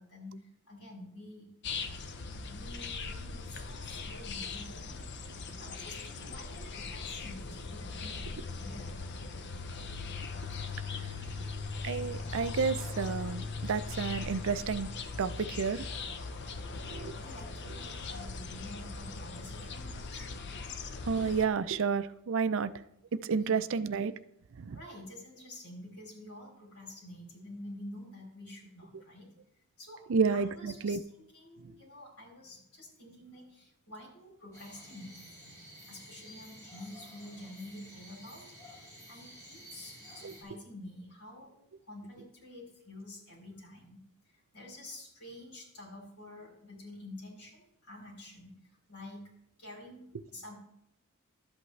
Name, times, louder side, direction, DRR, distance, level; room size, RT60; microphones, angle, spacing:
voice 1, 0.0-1.5 2.5-8.9 11.1-11.4 17.2-20.3 23.4-23.6 24.7-29.3 29.8-35.6 35.9-38.5 39.1-41.6 41.9-44.0 44.5-48.6 48.9-49.3 49.6-50.5, left 1 dB, 90° left, -1 dB, 3.7 m, -49 dB
sound 1, 1.6-21.5, left 4 dB, 50° left, 0.7 m, -40 dB
voice 2, 11.8-14.9 15.2-15.8 16.9-17.1 21.1-22.7 23.2-24.1 24.6-24.8 30.1-31.0 40.2-40.3, right 5 dB, 60° right, 13 dB, 0.4 m, -30 dB
sound 2, 34.5-40.4, equal, 15° left, 3.8 m, -52 dB
12.0 x 8.0 x 3.2 m, 0.78 s
head